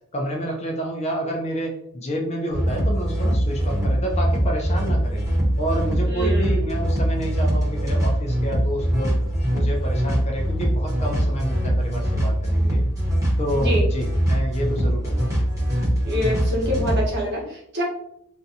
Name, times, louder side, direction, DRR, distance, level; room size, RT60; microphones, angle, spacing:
voice 1, 0.1-5.2 5.6-9.2 9.5-12.8 13.4-15.3, right 1 dB, 30° left, 0 dB, 0.4 m, -29 dB
sound 1, 2.5-17.1, equal, 15° right, 0.8 m, -22 dB
voice 2, 6.0-6.6 13.5-13.8 16.0-17.8, equal, 50° right, -3 dB, 0.9 m, -26 dB
2.5 x 2.2 x 2.6 m, 0.73 s
head